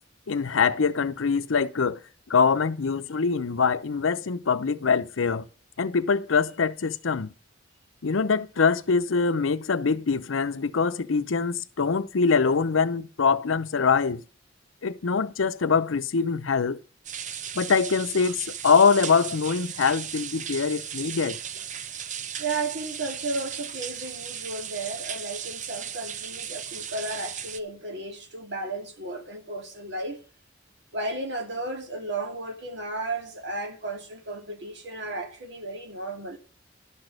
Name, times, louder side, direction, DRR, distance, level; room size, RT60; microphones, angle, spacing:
voice 1, 0.3-2.0 2.3-5.5 5.8-7.3 8.0-14.2 14.8-16.8 17.5-21.4, left 5 dB, 85° left, 0.7 m, -24 dB
sound 1, 17.0-27.6, right 8 dB, 40° right, 0.6 m, -36 dB
voice 2, 22.4-30.2 30.9-36.4, right 2 dB, 60° right, 2.4 m, -34 dB
11.5 x 6.2 x 6.5 m
head